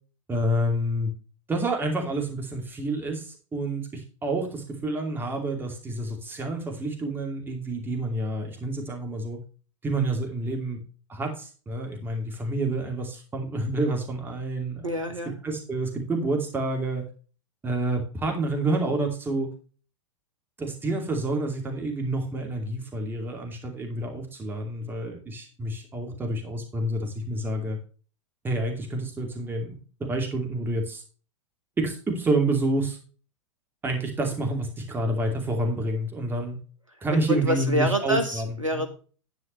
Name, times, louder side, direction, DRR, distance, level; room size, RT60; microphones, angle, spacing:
voice 1, 0.3-1.1 1.5-9.4 9.8-10.8 11.1-14.9 15.4-17.0 17.6-19.5 20.6-27.8 28.4-29.8 30.1-31.0 31.8-33.0 33.8-36.6 37.0-38.5 38.7-38.8, right 2 dB, 15° right, 2 dB, 2.6 m, -28 dB
voice 2, 14.8-15.4 37.1-38.9, equal, 85° right, 7 dB, 1.3 m, -26 dB
11.0 x 9.3 x 3.2 m, 0.38 s
figure-of-eight pair, 100°, 16 cm